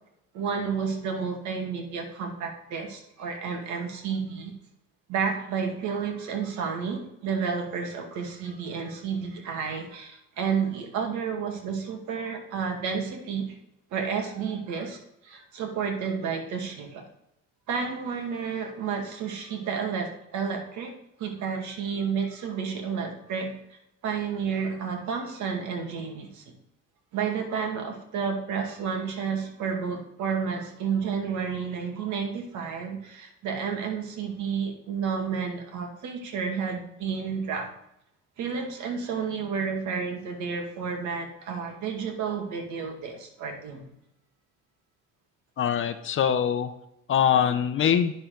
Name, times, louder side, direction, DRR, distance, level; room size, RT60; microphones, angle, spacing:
voice 1, 0.3-4.5 5.1-13.6 13.9-17.0 17.7-20.9 21.2-26.5 27.1-37.7 38.4-43.9, right 6 dB, 70° right, 3 dB, 2.1 m, -31 dB
voice 2, 45.6-46.7 47.1-48.1, left 8 dB, 40° left, 10 dB, 0.8 m, -23 dB
9.6 x 6.7 x 3.8 m, 0.80 s
cardioid pair, 115°, 30 cm